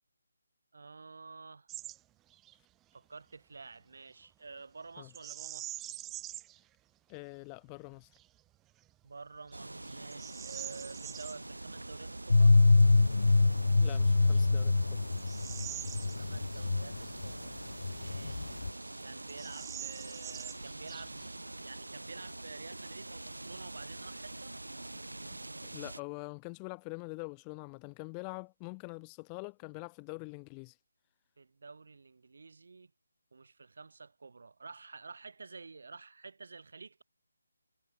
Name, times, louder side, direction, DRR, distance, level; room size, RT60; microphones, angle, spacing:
voice 1, 0.7-1.7 2.9-5.8 9.0-12.5 15.6-18.6 19.0-24.5 31.4-32.9 33.3-37.0, right 4 dB, 55° right, 5.2 m, -50 dB
Bird vocalization bird call bird song, 1.7-2.0 2.3-2.6 5.1-6.6 7.1-7.2 7.9-8.3 8.8-8.9 9.5-11.4 13.5-13.6 14.2-16.7 17.0-17.1 17.8-18.6 18.9-19.0 19.2-21.4, right 15 dB, 10° right, 2.3 m, -45 dB
voice 2, 7.1-8.1 13.8-15.0 25.3-25.4 25.7-30.8, left 40 dB or more, 15° left, 0.9 m, -44 dB
sound 1, 9.5-26.0, right 2 dB, 80° right, 1.2 m, -45 dB
sound 2, 12.3-17.3 17.6-18.7, left 3 dB, 65° left, 0.4 m, -25 dB
figure-of-eight pair, 150°, 0 cm